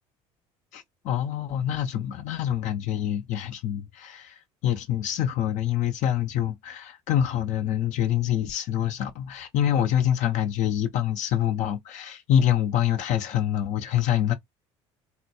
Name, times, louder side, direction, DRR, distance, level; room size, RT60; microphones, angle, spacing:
voice 1, 0.7-14.3, left 10 dB, 60° left, 0.6 m, -26 dB
4.1 x 2.2 x 2.9 m
hypercardioid pair, 70°, 14 cm